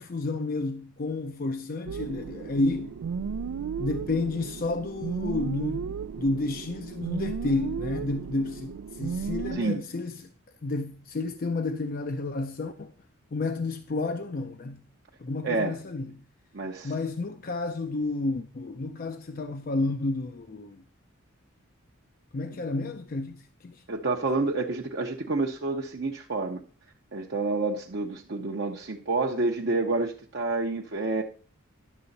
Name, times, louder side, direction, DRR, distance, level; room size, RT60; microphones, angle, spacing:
voice 1, 0.0-2.9 3.8-5.9 6.2-10.3 10.6-12.9 13.3-14.8 15.2-16.2 16.8-20.8 22.3-23.8, left 2 dB, 40° left, 0.5 m, -31 dB
sound 1, 1.9-9.6, right 6 dB, 80° right, 0.4 m, -34 dB
voice 2, 9.5-9.8 15.4-15.8 16.5-16.9 23.9-26.6 27.1-31.2, right 3 dB, 55° right, 0.8 m, -28 dB
11.0 x 6.7 x 4.0 m
head